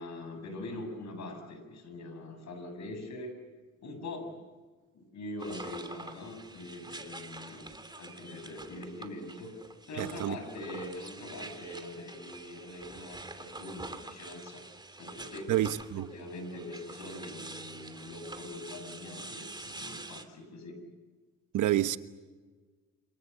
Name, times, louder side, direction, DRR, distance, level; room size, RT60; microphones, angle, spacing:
voice 1, 0.0-3.3 3.8-4.4 4.9-9.5 9.9-14.7 15.0-15.5 16.0-20.8, left 1 dB, 65° left, 7.7 m, -43 dB
sound 1, 5.4-20.2, right 2 dB, 15° right, 2.9 m, -46 dB
voice 2, 10.0-10.4 15.5-16.1 21.5-22.0, right 13 dB, 80° right, 1.2 m, -28 dB
28.0 x 27.0 x 6.9 m
cardioid pair, 90°, 30 cm